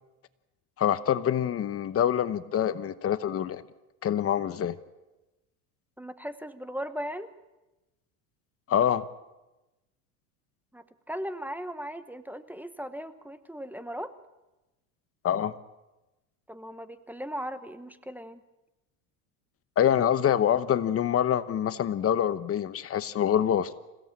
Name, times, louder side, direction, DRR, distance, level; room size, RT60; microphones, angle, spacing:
voice 1, 0.8-3.6 4.0-4.8 8.7-9.0 15.2-15.5 19.8-23.8, left 9 dB, 35° left, 13 dB, 1.0 m, -25 dB
voice 2, 6.0-7.3 10.7-14.1 16.5-18.4, equal, 5° right, 11 dB, 1.1 m, -38 dB
27.0 x 16.5 x 8.8 m, 1.0 s
supercardioid pair, 125°, 40 cm